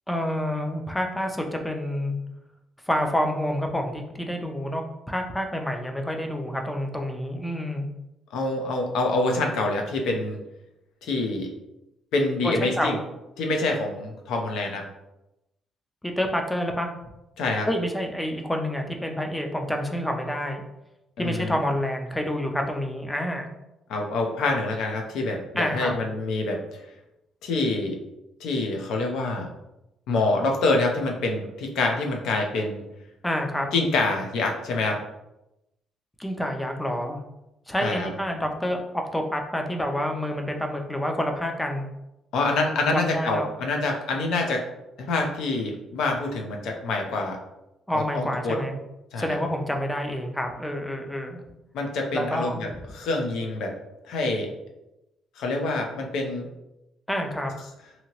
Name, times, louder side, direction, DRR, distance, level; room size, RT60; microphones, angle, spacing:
voice 1, 0.1-2.2 2.9-7.9 12.4-13.0 16.0-17.0 17.7-20.6 21.2-23.5 25.6-26.0 33.2-33.7 36.2-37.2 37.7-41.9 42.8-43.5 47.9-48.8 49.2-51.4 52.1-52.6 57.1-57.5, equal, 5° left, 3 dB, 0.3 m, -28 dB
voice 2, 8.3-10.4 11.0-11.5 12.1-13.0 13.4-14.9 17.4-17.7 21.2-21.6 23.9-26.8 27.4-28.0 28.4-29.5 30.1-32.8 33.7-35.0 37.8-38.1 42.3-44.6 45.1-47.4 47.9-48.6 49.1-49.4 51.7-52.7 52.9-53.7 54.1-54.5 55.4-56.5, left 2 dB, 80° left, 2 dB, 0.6 m, -26 dB
2.8 x 2.7 x 2.9 m, 0.92 s
cardioid pair, 165°, 0 cm